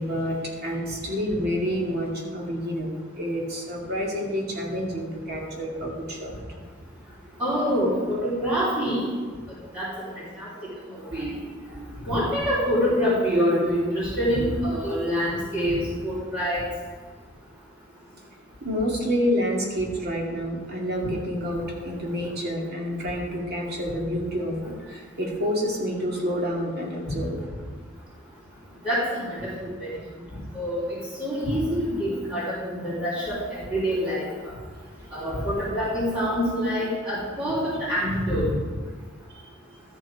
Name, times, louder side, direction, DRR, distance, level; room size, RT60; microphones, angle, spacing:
voice 1, 0.0-6.3 18.6-27.4 34.8-35.1, equal, 55° right, -2 dB, 2.3 m, -28 dB
voice 2, 7.4-9.1 9.7-9.9 10.4-10.5 10.9-11.3 12.0-15.8 16.0-16.7 28.8-29.9 30.5-34.3 35.1-38.5, equal, 25° right, -13 dB, 3.7 m, -25 dB
13.0 x 7.1 x 4.9 m, 1.5 s
head